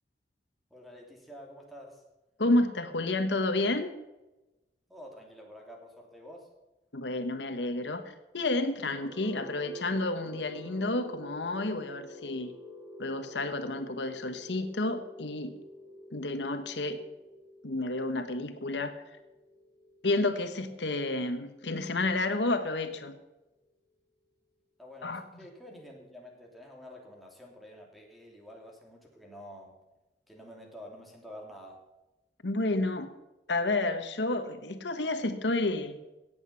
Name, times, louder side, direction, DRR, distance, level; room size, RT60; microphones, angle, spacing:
voice 1, 0.7-2.0 4.9-6.5 24.8-29.8 30.3-31.8, equal, ahead, -1 dB, 3.0 m, -49 dB
voice 2, 2.4-3.9 6.9-8.0 8.3-12.5 13.0-15.5 16.1-17.0 17.6-18.9 20.0-23.2 25.0-25.2 32.4-33.1 33.5-36.0, left 2 dB, 85° left, 8 dB, 1.2 m, -30 dB
sound 1, 8.7-22.6, left 1 dB, 20° right, 5.5 m, -49 dB
17.5 x 8.1 x 5.6 m, 1.0 s
head